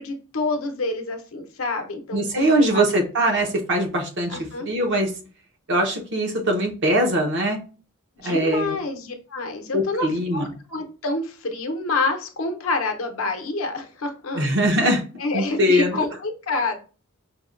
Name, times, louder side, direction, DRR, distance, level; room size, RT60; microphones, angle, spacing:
voice 1, 0.0-2.8 4.3-4.7 8.2-14.5 15.2-16.8, left 3 dB, 80° left, 4 dB, 0.7 m, -28 dB
voice 2, 2.1-4.4 4.6-5.1 5.7-7.6 8.2-8.8 9.7-10.5 14.3-15.0 15.3-16.0, right 1 dB, 60° right, 2 dB, 0.8 m, -21 dB
5.2 x 2.1 x 2.4 m, 0.36 s
head